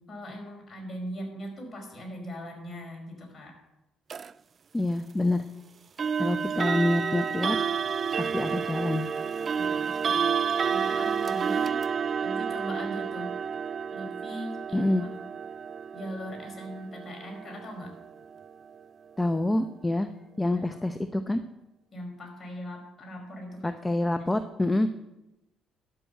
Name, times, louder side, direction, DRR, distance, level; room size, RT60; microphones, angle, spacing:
voice 1, 0.1-3.5 6.2-6.4 9.5-10.3 10.7-11.8 12.2-13.3 13.9-15.1 15.9-17.9 20.5-20.8 21.9-23.7, equal, 35° left, 1 dB, 4.9 m, -40 dB
sound 1, 4.1-4.3 6.0-18.8, right 6 dB, 45° right, 0.3 m, -30 dB
voice 2, 4.7-5.4 6.2-7.6 8.2-9.0 14.7-15.0 19.2-20.1 20.4-21.4 23.6-24.9, left 1 dB, 15° left, 9 dB, 0.7 m, -26 dB
12.5 x 6.2 x 7.9 m, 0.95 s
supercardioid pair, 70°, 0 cm